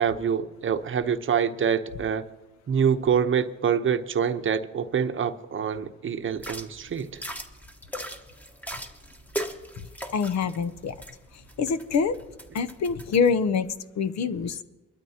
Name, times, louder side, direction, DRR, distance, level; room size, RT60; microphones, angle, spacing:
voice 1, 0.0-2.3 2.7-7.2, right 7 dB, 40° right, 0.8 m, -26 dB
sound 1, 6.3-13.3, right 1 dB, 5° left, 1.3 m, -39 dB
voice 2, 10.1-10.9 11.6-12.2 12.5-13.7 14.0-14.6, left 5 dB, 60° left, 0.8 m, -25 dB
23.0 x 12.5 x 2.9 m
cardioid pair, 90°, 30 cm